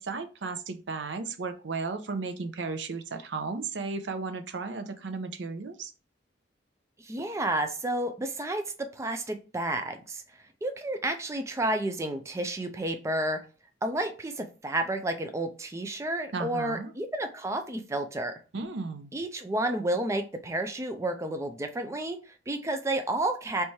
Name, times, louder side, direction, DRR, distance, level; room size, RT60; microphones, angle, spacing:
voice 1, 0.0-5.9 16.3-16.9 18.5-19.1, right 4 dB, 80° right, 9 dB, 0.6 m, -34 dB
voice 2, 7.0-10.2 10.6-13.4 13.8-18.3 19.1-23.6, right 1 dB, 15° right, 6 dB, 0.4 m, -31 dB
3.4 x 3.1 x 4.2 m, 0.34 s
head